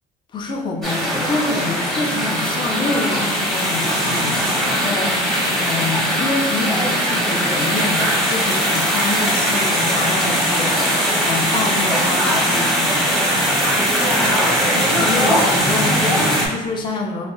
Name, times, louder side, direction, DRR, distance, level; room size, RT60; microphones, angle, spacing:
voice 1, 0.3-5.1 5.6-10.7 11.1-13.0 14.9-17.3, left 3 dB, 25° left, 1 dB, 0.4 m, -26 dB
sound 1, 0.8-16.5, equal, ahead, 0.8 m, -19 dB
3.0 x 2.3 x 2.9 m, 1.1 s
cardioid pair, 110°, 17 cm